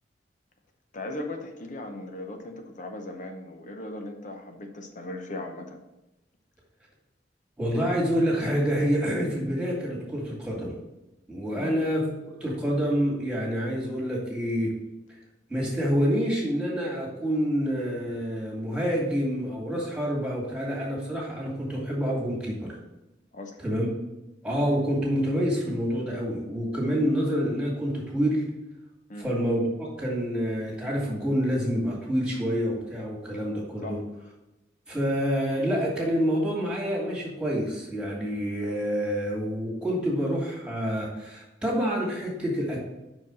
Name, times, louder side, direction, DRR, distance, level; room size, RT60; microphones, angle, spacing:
voice 1, 0.9-5.8 11.5-11.8 23.3-23.6 29.1-29.3 33.8-34.0, left 2 dB, 45° left, 4 dB, 0.8 m, -38 dB
voice 2, 7.6-10.8 11.3-12.0 12.4-14.7 15.1-15.2 15.5-22.8 23.6-23.9 24.4-28.4 29.2-34.0 34.9-42.8, equal, 5° right, -4 dB, 2.2 m, -27 dB
5.7 x 4.9 x 6.2 m, 0.96 s
head